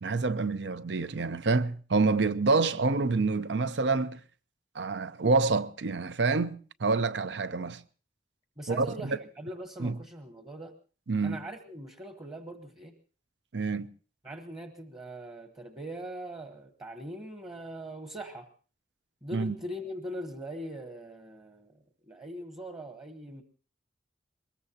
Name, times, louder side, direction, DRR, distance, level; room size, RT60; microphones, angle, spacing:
voice 1, 0.0-4.2 4.7-7.8 8.7-9.2 9.8-10.0 11.1-11.4 13.5-13.9 19.3-19.5, right 3 dB, 75° right, 0.7 m, -27 dB
voice 2, 8.6-10.7 11.2-12.9 14.2-18.5 19.2-21.7 22.1-23.4, right 1 dB, 25° right, 1.1 m, -41 dB
23.0 x 21.0 x 2.9 m
head